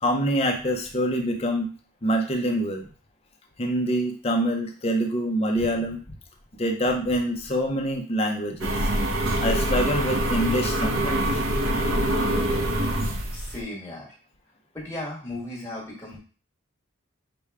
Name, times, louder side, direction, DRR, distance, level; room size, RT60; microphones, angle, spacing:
voice 1, 0.0-1.7 2.0-2.8 3.6-6.0 6.6-8.9 9.4-11.3, equal, 30° left, 2 dB, 0.6 m, -25 dB
sound 1, 8.6-13.6, right 1 dB, 65° right, 0.7 m, -25 dB
voice 2, 13.3-14.1 14.7-16.2, left 1 dB, 15° left, -5 dB, 1.4 m, -36 dB
6.0 x 2.2 x 3.4 m, 0.39 s
head